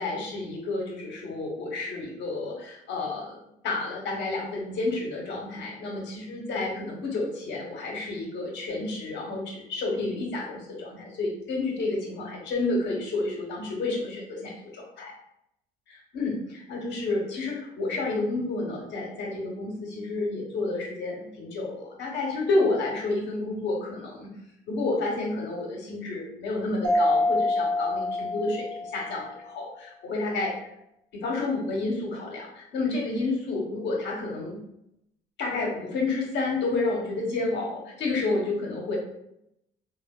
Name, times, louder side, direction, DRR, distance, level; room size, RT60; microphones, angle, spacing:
voice 1, 0.0-3.4 3.6-15.1 15.9-24.3 24.7-30.5 31.1-34.6 35.4-39.0, left 3 dB, 65° left, -1 dB, 0.9 m, -30 dB
Mallet percussion, 26.8-29.4, left 2 dB, 80° right, 0.7 m, -26 dB
3.3 x 2.2 x 2.3 m, 0.80 s
supercardioid pair, 70°, 20 cm